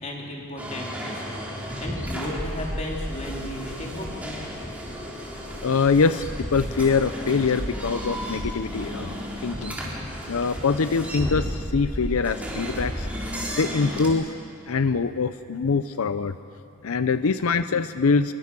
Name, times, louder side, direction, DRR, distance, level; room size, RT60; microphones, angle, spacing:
voice 1, 0.0-4.4, left 1 dB, 30° left, -1 dB, 3.3 m, -35 dB
sound 1, 0.6-14.1, equal, 5° right, 3.7 m, -33 dB
voice 2, 5.6-9.8 10.3-13.1 13.5-14.3 14.7-16.4 16.8-18.3, left 4 dB, 85° left, 12 dB, 0.6 m, -24 dB
25.0 x 23.0 x 6.1 m, 2.5 s
head